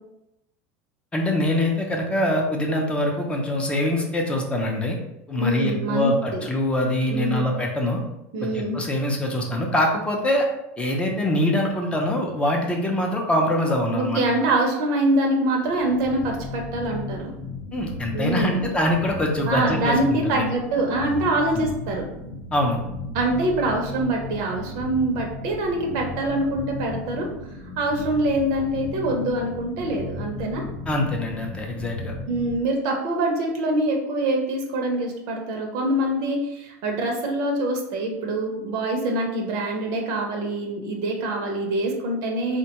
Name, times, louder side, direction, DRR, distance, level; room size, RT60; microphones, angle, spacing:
voice 1, 1.1-5.0 5.3-8.0 8.4-10.5 10.8-14.2 17.7-20.5 21.5-21.6 22.5-22.8 30.9-32.1, left 1 dB, 15° left, 1 dB, 0.5 m, -24 dB
voice 2, 5.4-6.4 7.1-7.5 8.3-8.8 13.9-17.4 18.1-18.6 19.4-22.1 23.1-27.3 27.8-30.6 32.3-42.6, right 1 dB, 55° right, 1 dB, 0.6 m, -24 dB
sound 1, 15.6-32.6, left 3 dB, 45° left, 0.8 m, -36 dB
3.5 x 2.2 x 2.8 m, 0.89 s
supercardioid pair, 135°, 8 cm